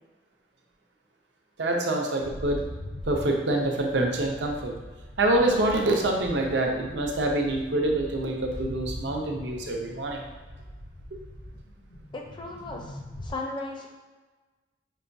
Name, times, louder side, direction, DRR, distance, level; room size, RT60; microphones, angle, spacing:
voice 1, 1.6-2.6 3.1-4.7 5.2-10.2, right 1 dB, 75° right, 1 dB, 0.6 m, -26 dB
sound 1, 2.2-13.3, equal, 75° left, 0.9 m, -42 dB
voice 2, 12.1-13.9, left 2 dB, 25° left, 1 dB, 0.5 m, -36 dB
5.4 x 2.3 x 2.6 m, 1.3 s
head